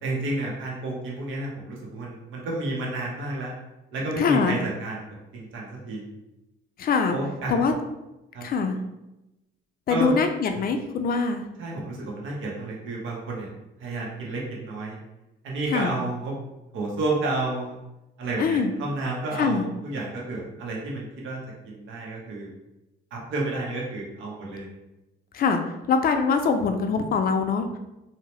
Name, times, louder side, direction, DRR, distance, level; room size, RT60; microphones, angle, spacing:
voice 1, 0.0-3.5 3.9-6.0 7.1-7.5 8.3-8.5 9.9-10.1 10.5-10.7 11.6-13.5 13.8-15.0 15.4-16.3 16.7-17.8 18.2-21.4 21.6-22.5 23.1-24.7, right 2 dB, 75° right, -2 dB, 0.7 m, -31 dB
voice 2, 4.2-4.6 6.8-7.2 7.5-7.7 8.4-8.8 9.9-11.4 15.7-15.9 18.4-18.7 19.4-19.6 25.3-25.6 25.9-27.7, left 5 dB, 50° left, 6 dB, 0.4 m, -23 dB
2.7 x 2.0 x 3.0 m, 0.95 s
cardioid pair, 90°, 20 cm